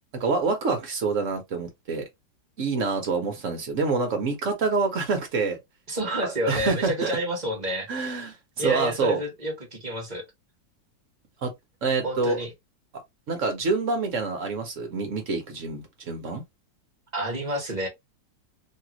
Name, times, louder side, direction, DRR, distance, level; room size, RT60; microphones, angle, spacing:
voice 1, 0.1-2.0 2.6-5.6 6.2-7.2 7.9-9.2 11.4-11.5 11.8-12.4 13.3-16.4, right 4 dB, 55° right, 0.9 m, -27 dB
voice 2, 5.9-8.3 8.6-10.2 12.0-12.5 17.1-17.9, right 1 dB, 30° right, 0.9 m, -29 dB
3.3 x 2.3 x 2.8 m
omnidirectional pair, 2.0 m